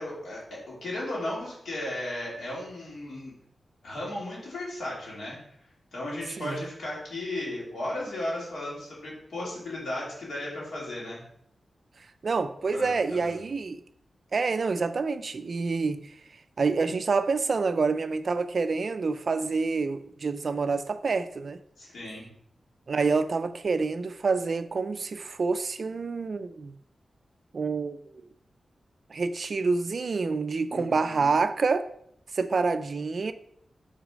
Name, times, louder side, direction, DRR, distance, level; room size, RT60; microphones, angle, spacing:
voice 1, 0.0-3.3 3.8-5.4 5.9-11.2 12.7-13.5 21.8-22.3 30.7-31.4, left 1 dB, 85° left, 2.8 m, -35 dB
voice 2, 12.2-13.8 14.3-16.1 16.6-21.6 22.9-26.7 27.5-28.0 29.1-31.8 32.3-33.3, right 4 dB, 55° right, 0.3 m, -27 dB
6.2 x 4.0 x 5.0 m
wide cardioid pair, 120°, 0 cm